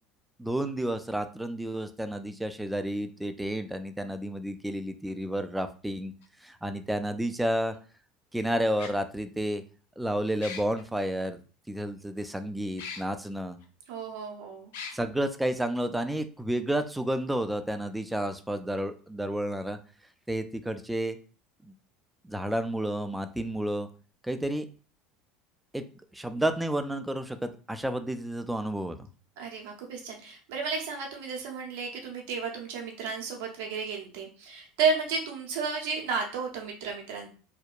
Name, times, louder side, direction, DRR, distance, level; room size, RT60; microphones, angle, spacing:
voice 1, 0.4-6.1 6.4-7.8 8.3-9.6 10.0-11.4 11.7-13.6 14.9-19.8 20.3-21.2 21.6-21.7 22.2-23.9 24.2-24.7 25.7-25.8 26.1-29.1, right 1 dB, 5° right, 8 dB, 0.3 m, -31 dB
sound 1, 6.2-6.3 7.7-7.8 8.8-8.9 10.4-10.8 12.8-13.0 13.6-13.7 14.7-15.0, left 6 dB, 70° left, 0.3 m, -39 dB
voice 2, 13.9-14.7 29.4-37.3, right 5 dB, 70° right, 1 dB, 0.6 m, -32 dB
2.7 x 2.1 x 2.3 m, 0.37 s
hypercardioid pair, 75°, 0 cm